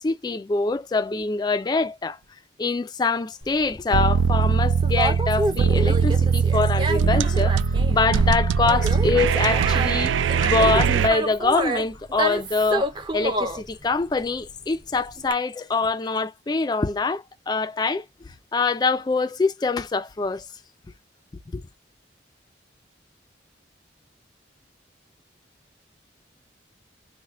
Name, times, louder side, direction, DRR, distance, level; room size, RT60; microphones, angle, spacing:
voice 1, 0.0-2.2 2.6-7.6 7.9-10.1 10.4-18.0 18.5-20.4 21.5-21.6, left 3 dB, 20° left, 0.3 m, -24 dB
Conversation, 3.4-15.3, right 1 dB, 25° right, 0.6 m, -29 dB
sound 1, 3.9-11.1, right 6 dB, 85° right, 0.3 m, -21 dB
3.1 x 2.1 x 3.5 m
head